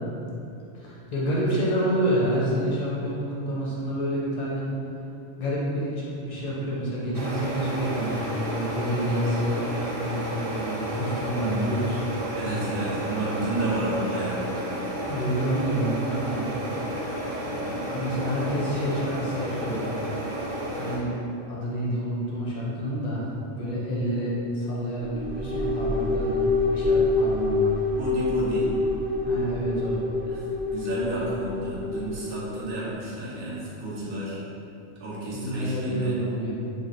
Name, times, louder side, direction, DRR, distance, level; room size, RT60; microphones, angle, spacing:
voice 1, 0.7-4.7 5.4-9.6 10.0-12.0 15.1-16.5 17.6-19.9 20.7-21.1 21.5-23.3 23.5-27.7 29.2-30.0 35.1-36.5, equal, 45° left, -6 dB, 0.6 m, -28 dB
sound 1, 7.1-21.0, right 1 dB, 75° right, 1.0 m, -32 dB
voice 2, 12.3-14.4 28.0-28.7 30.3-34.4 35.0-36.1, right 1 dB, 50° right, -7 dB, 0.9 m, -31 dB
sound 2, 25.0-32.6, left 3 dB, 25° right, 0.8 m, -26 dB
3.2 x 2.1 x 3.9 m, 2.7 s
omnidirectional pair, 1.3 m